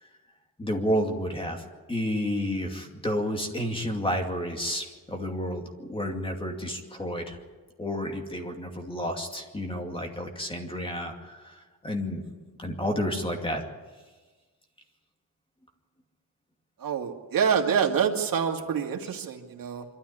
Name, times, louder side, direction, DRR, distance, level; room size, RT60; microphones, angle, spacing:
voice 1, 0.6-7.4 7.8-13.6, equal, 15° left, 2 dB, 2.5 m, -31 dB
voice 2, 16.8-19.8, right 7 dB, 75° right, 2 dB, 2.4 m, -26 dB
24.5 x 13.0 x 9.9 m, 1.3 s
wide cardioid pair, 160°, 34 cm